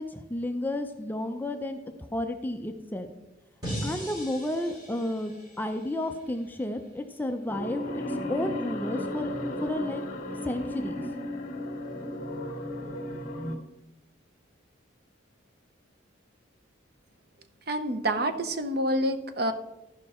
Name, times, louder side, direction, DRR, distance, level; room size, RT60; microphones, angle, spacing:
voice 1, 0.0-1.8 2.1-3.1 3.8-9.3 9.6-10.0 10.4-11.0, left 1 dB, 10° left, 5 dB, 0.5 m, -32 dB
sound 1, 3.6-6.8, equal, 20° right, 3.6 m, -39 dB
sound 2, 7.5-13.6, left 1 dB, 45° left, 1.7 m, -34 dB
voice 2, 17.7-19.5, right 1 dB, 55° right, 9 dB, 0.8 m, -27 dB
14.0 x 5.3 x 4.3 m, 0.96 s
head